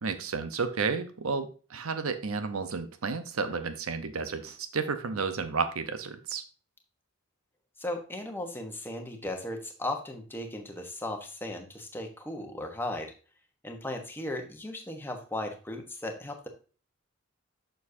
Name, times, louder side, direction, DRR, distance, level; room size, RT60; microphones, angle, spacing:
voice 1, 0.0-6.4, right 4 dB, 75° right, 9 dB, 0.9 m, -32 dB
voice 2, 7.8-13.1 13.6-16.5, left 1 dB, 10° left, 3 dB, 1.1 m, -36 dB
7.3 x 6.5 x 2.7 m, 0.36 s
head